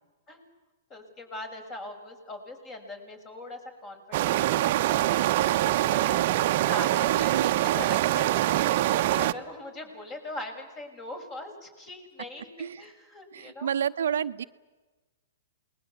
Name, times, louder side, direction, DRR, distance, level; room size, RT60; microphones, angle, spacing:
voice 1, 0.9-6.2 6.7-13.7, left 1 dB, 30° left, 6 dB, 6.6 m, -41 dB
sound 1, 4.1-9.3, right 15 dB, 50° right, 0.9 m, -24 dB
voice 2, 7.1-7.6 12.6-12.9 13.3-14.4, right 8 dB, 75° right, 11 dB, 0.9 m, -30 dB
28.5 x 21.0 x 8.3 m, 1.2 s
hypercardioid pair, 125°, 0 cm